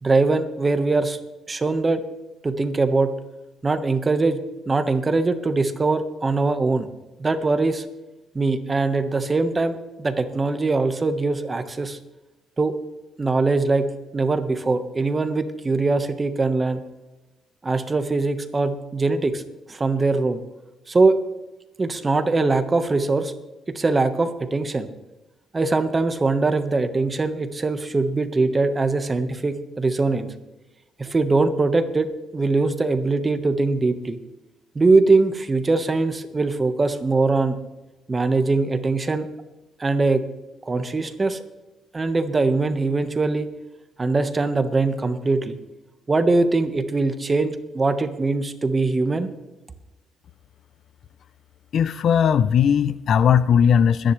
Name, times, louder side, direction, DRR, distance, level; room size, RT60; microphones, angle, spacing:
voice 1, 0.0-1.2 1.5-2.0 2.4-3.1 3.6-4.4 4.7-6.9 7.2-7.8 8.3-12.0 12.6-12.7 13.2-13.9 14.1-16.8 17.6-19.4 19.7-20.4 20.9-21.1 21.8-23.3 23.7-24.9 25.5-30.3 31.0-32.1 32.3-34.2 34.7-37.6 38.1-39.3 39.8-40.2 40.6-41.4 41.9-43.5 44.0-45.6 46.1-49.3, right 3 dB, 25° right, 9 dB, 1.3 m, -22 dB
voice 2, 51.7-54.1, left 8 dB, 60° left, 16 dB, 0.5 m, -18 dB
22.5 x 10.5 x 3.3 m, 1.0 s
cardioid pair, 90°, 0 cm